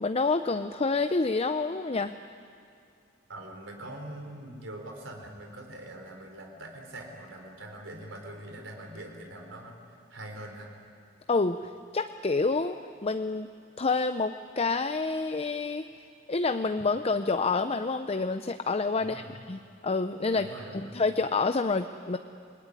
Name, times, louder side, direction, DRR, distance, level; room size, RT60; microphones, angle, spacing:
voice 1, 0.0-2.2 11.3-11.6 11.9-13.5 13.8-15.8 16.3-19.2 19.5-20.5 20.9-22.2, left 3 dB, 30° left, 9 dB, 0.6 m, -28 dB
voice 2, 3.3-9.8 10.1-10.7 19.0-19.4 20.3-21.0, right 1 dB, 85° right, 2 dB, 4.1 m, -43 dB
28.0 x 20.0 x 9.8 m, 2.4 s
head